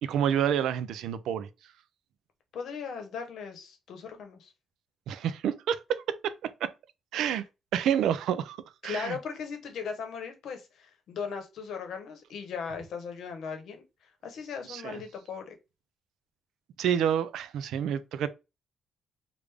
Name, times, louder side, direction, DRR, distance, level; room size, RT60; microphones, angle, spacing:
voice 1, 0.0-1.5 5.1-6.7 7.1-7.4 7.7-8.6 8.8-9.2 14.7-15.0 16.8-18.3, right 9 dB, 90° right, 0.3 m, -28 dB
voice 2, 2.5-4.5 8.8-15.6, left 6 dB, 70° left, 0.9 m, -38 dB
3.2 x 2.5 x 3.3 m
cardioid pair, 140°, 0 cm